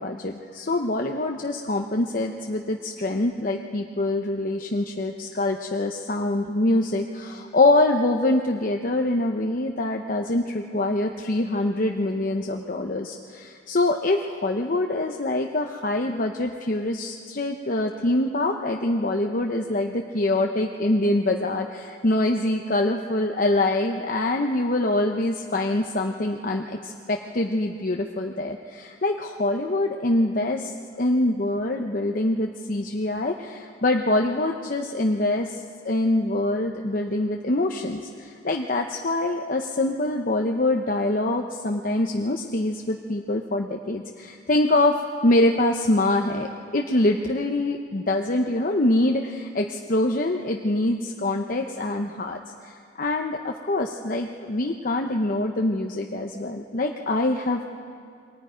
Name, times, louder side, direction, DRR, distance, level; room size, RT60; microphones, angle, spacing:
voice 1, 0.0-44.9 45.2-57.8, left 2 dB, 50° left, 2 dB, 0.9 m, -24 dB
28.0 x 22.5 x 5.1 m, 2.3 s
head